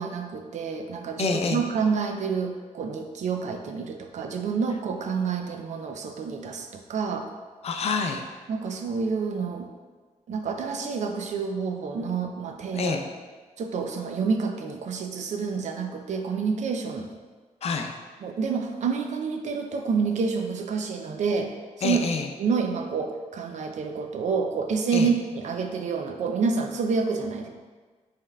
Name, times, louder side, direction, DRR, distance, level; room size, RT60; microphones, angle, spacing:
voice 1, 0.0-7.3 8.5-9.7 10.3-13.0 13.6-17.1 18.2-21.5 21.8-22.0 22.4-27.5, right 5 dB, 65° right, 4 dB, 0.4 m, -28 dB
voice 2, 1.2-1.6 7.6-8.2 12.7-13.0 17.6-17.9 21.8-22.3 24.9-25.1, left 4 dB, 50° left, 4 dB, 0.4 m, -27 dB
5.4 x 3.4 x 2.2 m, 1.4 s
wide cardioid pair, 135°, 13 cm